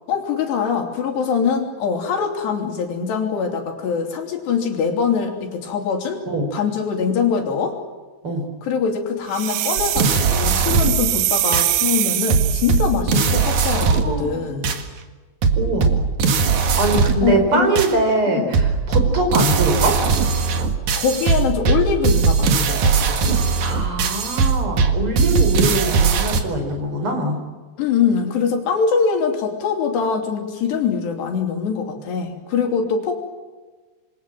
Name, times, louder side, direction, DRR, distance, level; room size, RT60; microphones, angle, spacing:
voice 1, 0.1-6.2 6.5-7.8 8.6-14.7 17.2-17.7 18.3-18.5 21.0-23.4 27.8-33.2, left 6 dB, 75° left, 3 dB, 5.1 m, -23 dB
sound 1, 9.3-13.0, right 15 dB, 75° right, 2.8 m, -23 dB
sound 2, 9.8-11.1 11.5-11.7 12.3-14.2 14.6-14.8 15.4-17.3 17.8-17.9 18.5-26.4, right 5 dB, 55° right, 2.6 m, -19 dB
voice 2, 13.8-14.4 15.6-15.9 16.8-20.0 23.6-27.4, right 2 dB, 30° right, 5 dB, 5.3 m, -22 dB
27.0 x 23.5 x 7.6 m, 1.3 s
omnidirectional pair, 5.0 m